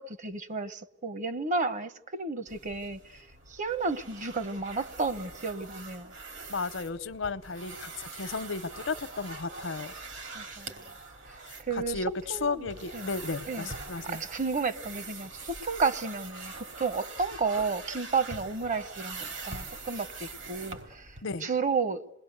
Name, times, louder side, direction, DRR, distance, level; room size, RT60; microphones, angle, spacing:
voice 1, 0.0-3.2 3.5-6.1 10.3-10.7 11.7-12.0 12.3-12.7 12.9-13.1 13.5-13.7 14.0-22.0, right 4 dB, 40° right, 0.9 m, -32 dB
sound 1, 2.5-21.2, right 3 dB, 75° right, 3.5 m, -43 dB
voice 2, 6.5-9.9 11.5-14.2 21.2-21.5, left 4 dB, 80° left, 0.9 m, -34 dB
28.5 x 21.0 x 8.0 m
head